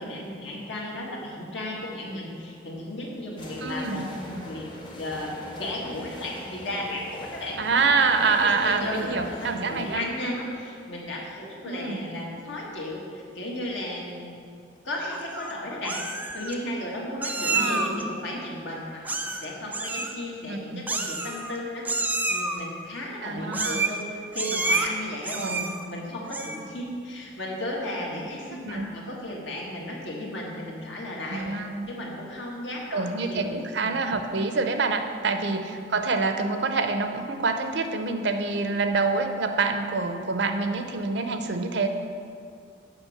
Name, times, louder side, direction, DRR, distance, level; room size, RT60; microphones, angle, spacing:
voice 1, 0.0-4.7 5.0-5.3 5.6-7.6 8.0-14.4 14.8-16.0 16.3-31.5 31.9-33.9 35.4-35.5, left 1 dB, 75° left, -3 dB, 1.6 m, -35 dB
sound 1, 3.4-10.2, left 1 dB, 25° left, 0.8 m, -41 dB
voice 2, 3.6-4.1 7.6-10.1 11.6-12.1 17.4-18.0 20.4-20.9 23.2-23.8 25.3-25.7 28.5-28.9 31.3-31.9 32.9-41.9, right 4 dB, 65° right, 7 dB, 0.6 m, -26 dB
Meow, 15.1-15.5 15.8-16.5 17.2-18.0 19.0-19.5 19.7-20.1 20.9-21.6 21.8-22.6 23.5-24.0 24.3-24.9 25.2-25.8 26.2-26.7, right 3 dB, 10° right, 0.4 m, -28 dB
7.1 x 5.2 x 7.0 m, 2.4 s
head